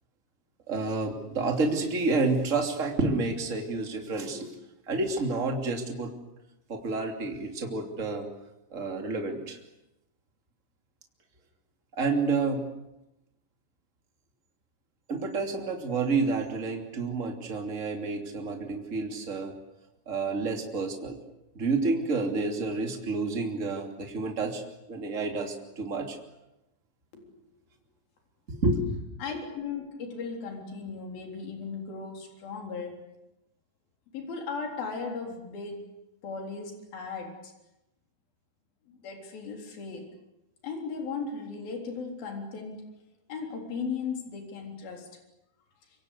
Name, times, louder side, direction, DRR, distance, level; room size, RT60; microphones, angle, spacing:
voice 1, 0.7-4.5 4.9-6.1 6.7-8.3 8.7-9.6 12.0-12.6 15.1-19.5 20.1-21.2 21.5-24.6 24.9-26.2 28.5-28.9, right 3 dB, 20° right, 3 dB, 2.9 m, -29 dB
voice 2, 29.2-33.0 34.1-35.9 36.2-37.5 38.9-40.1 40.6-42.8 43.3-45.1, left 5 dB, 70° left, 2 dB, 5.5 m, -37 dB
26.0 x 24.5 x 8.3 m, 0.91 s
omnidirectional pair, 4.4 m